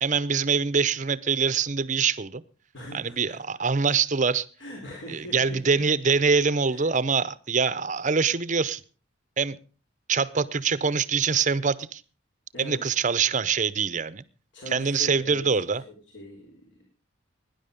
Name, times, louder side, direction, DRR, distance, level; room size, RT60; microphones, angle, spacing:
voice 1, 0.0-2.4 2.9-4.5 5.1-8.8 9.4-9.6 10.1-12.0 12.6-14.2 14.7-15.8, right 5 dB, 40° right, 0.7 m, -24 dB
voice 2, 2.7-3.4 4.6-5.6 6.7-6.9 12.5-12.8 14.5-15.6 16.1-16.9, left 1 dB, 65° left, 4.1 m, -41 dB
18.5 x 10.5 x 5.2 m
head